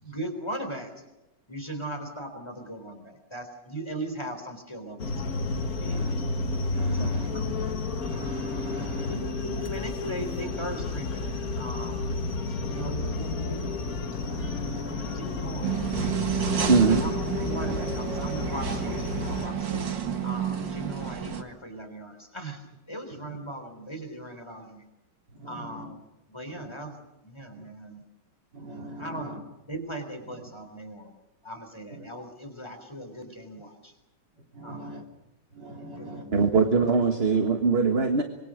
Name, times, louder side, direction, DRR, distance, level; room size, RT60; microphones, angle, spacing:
voice 1, 0.0-0.9 1.5-5.4 5.7-6.3 6.9-7.6 8.8-12.1 12.7-13.6 15.0-15.7 17.0-17.1 17.4-19.9 20.2-24.8 25.5-26.0 26.3-28.0 29.0-29.4 29.7-31.1 31.4-33.9 34.6-35.0 35.9-36.5, right 1 dB, 15° left, 5 dB, 4.0 m, -39 dB
sound 1, 5.0-19.5, left 3 dB, 55° left, 2.2 m, -31 dB
voice 2, 5.5-6.3 6.6-9.2 12.6-13.1 14.0-15.4 20.5-20.6 25.4-25.9 26.5-26.7 27.6-27.7 28.5-29.4 31.9-32.1 34.6-35.0 35.6-36.2, right 1 dB, 70° right, 3 dB, 3.8 m, -41 dB
sound 2, 15.6-21.4, right 8 dB, 90° right, 2.5 m, -30 dB
voice 3, 16.7-17.0 36.3-38.2, right 4 dB, 35° right, 6 dB, 1.8 m, -21 dB
25.5 x 23.5 x 6.5 m, 1.0 s
omnidirectional pair, 1.9 m